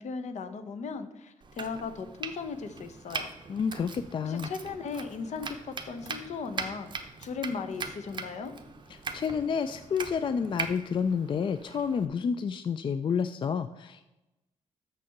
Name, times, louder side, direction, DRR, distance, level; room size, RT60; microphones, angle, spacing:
voice 1, 0.0-3.3 4.2-6.9 7.2-8.5, left 5 dB, 65° left, 10 dB, 0.8 m, -37 dB
Domestic sounds home sounds, 1.4-12.1, right 4 dB, 35° right, 0.9 m, -41 dB
voice 2, 3.5-4.5 8.9-14.0, left 6 dB, 40° left, 11 dB, 0.3 m, -30 dB
6.9 x 6.3 x 5.8 m, 0.98 s
cardioid pair, 105°, 13 cm